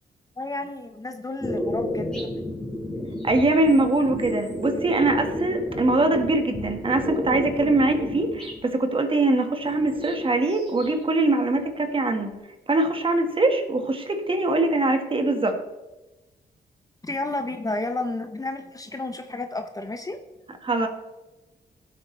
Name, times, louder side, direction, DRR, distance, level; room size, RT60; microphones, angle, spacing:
voice 1, 0.4-2.3 17.0-20.2, left 2 dB, 20° left, 7 dB, 0.8 m, -31 dB
sound 1, 1.4-8.6 9.6-11.0 11.2-12.2, left 1 dB, 5° left, 4.1 m, -32 dB
voice 2, 3.2-12.3 12.7-15.6 20.6-20.9, right 2 dB, 35° right, 5 dB, 1.7 m, -22 dB
16.5 x 7.9 x 3.3 m, 1.1 s
cardioid pair, 90°, 16 cm